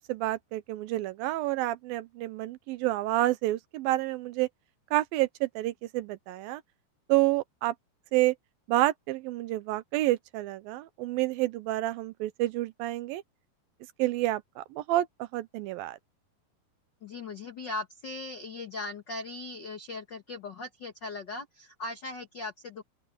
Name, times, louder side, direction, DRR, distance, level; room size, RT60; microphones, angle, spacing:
voice 1, 0.0-4.5 4.9-6.6 7.1-7.7 8.1-8.3 8.7-13.2 14.0-16.0, right 16 dB, 80° right, 2.4 m, -29 dB
voice 2, 17.0-22.8, left 3 dB, 75° left, 1.0 m, -39 dB
open air
omnidirectional pair, 4.4 m